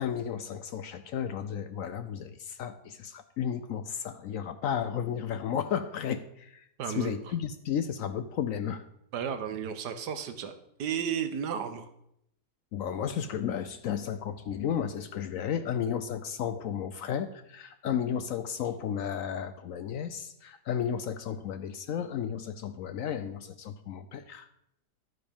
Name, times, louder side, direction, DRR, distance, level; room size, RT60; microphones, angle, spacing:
voice 1, 0.0-8.8 12.7-24.5, left 8 dB, 70° left, 11 dB, 0.9 m, -33 dB
voice 2, 6.8-7.2 9.1-10.5 10.8-11.9, right 8 dB, 80° right, 9 dB, 1.5 m, -33 dB
11.5 x 9.5 x 3.5 m, 0.77 s
omnidirectional pair, 1.8 m